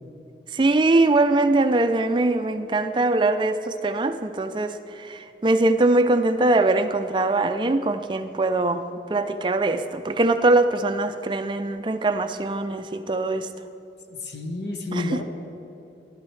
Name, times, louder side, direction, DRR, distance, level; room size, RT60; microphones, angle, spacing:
voice 1, 0.5-8.8 9.1-13.5 14.9-15.2, right 2 dB, 25° right, 9 dB, 0.4 m, -22 dB
voice 2, 14.1-15.2, left 2 dB, 75° left, 5 dB, 1.0 m, -30 dB
14.5 x 12.0 x 3.2 m, 2.9 s
head